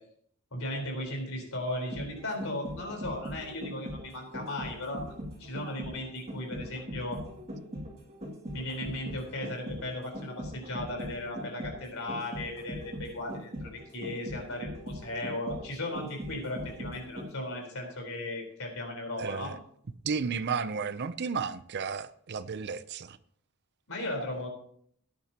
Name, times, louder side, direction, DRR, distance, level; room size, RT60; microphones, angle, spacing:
voice 1, 0.5-5.1 5.4-7.2 8.5-19.5 23.9-24.5, left 1 dB, 70° left, 1 dB, 4.2 m, -36 dB
sound 1, 1.7-17.6 17.9-18.0, equal, 30° right, 2.6 m, -40 dB
voice 2, 19.2-19.7 20.0-23.2, right 5 dB, 50° right, 14 dB, 0.5 m, -33 dB
17.5 x 10.5 x 2.9 m, 0.65 s
head